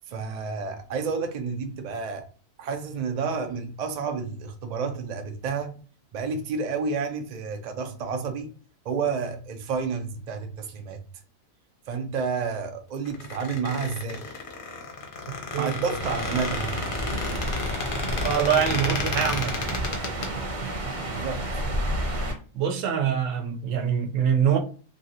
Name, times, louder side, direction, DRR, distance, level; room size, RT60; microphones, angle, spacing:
voice 1, 0.1-2.3 2.6-5.8 6.1-8.5 8.8-11.0 11.9-14.3 15.5-16.8 21.0-21.5, right 5 dB, 90° right, 0.3 m, -30 dB
Squeak, 13.1-20.3, left 4 dB, 50° left, 0.7 m, -32 dB
sound 1, 16.0-22.3, right 1 dB, 40° right, 0.8 m, -31 dB
voice 2, 18.2-19.5 22.5-24.6, right 8 dB, 75° right, 1.0 m, -24 dB
3.0 x 2.7 x 2.7 m
omnidirectional pair, 1.4 m